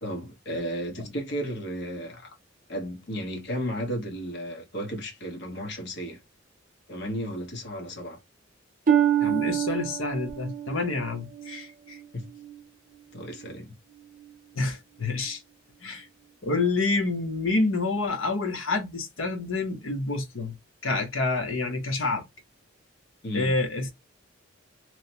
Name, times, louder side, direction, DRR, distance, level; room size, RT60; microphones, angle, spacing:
voice 1, 0.0-2.3 2.7-6.2 6.9-8.2 12.1-12.3 13.1-13.8 23.2-23.5, equal, 60° left, 1.0 m, -34 dB
Harp, 8.9-12.6 13.2-13.6 14.2-14.3, right 10 dB, 40° right, 0.6 m, -27 dB
voice 2, 9.2-12.0 14.6-15.4 15.8-16.1 16.4-20.5 20.8-22.2 23.3-23.9, left 3 dB, 85° left, 0.9 m, -28 dB
3.0 x 2.0 x 2.7 m
head